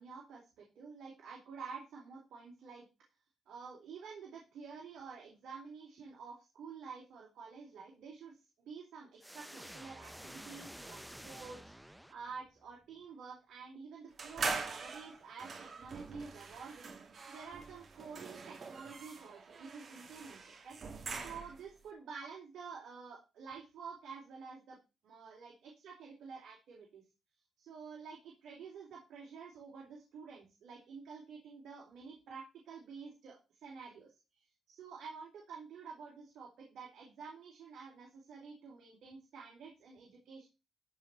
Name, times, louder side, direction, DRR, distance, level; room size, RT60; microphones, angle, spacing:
voice 1, 0.0-2.9 3.5-11.7 12.1-24.8 25.0-27.0 27.6-34.1 34.7-40.4, right 5 dB, 80° right, -1 dB, 4.2 m, -50 dB
sound 1, 9.2-12.6, equal, 5° right, 0.8 m, -50 dB
sound 2, 14.2-21.7, right 4 dB, 55° right, 2.6 m, -43 dB
14.5 x 4.9 x 7.1 m, 0.29 s
cardioid pair, 85°, 0 cm